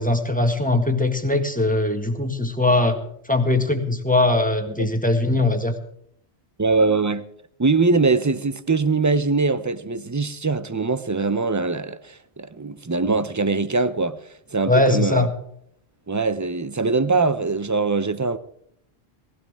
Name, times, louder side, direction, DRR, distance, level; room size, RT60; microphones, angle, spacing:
voice 1, 0.0-3.0 3.3-5.7 14.7-15.3, left 2 dB, 10° left, 1.6 m, -20 dB
voice 2, 6.6-7.2 7.6-14.2 14.5-15.3 16.1-18.4, right 3 dB, 20° right, 0.6 m, -22 dB
18.5 x 16.0 x 3.6 m
omnidirectional pair, 1.1 m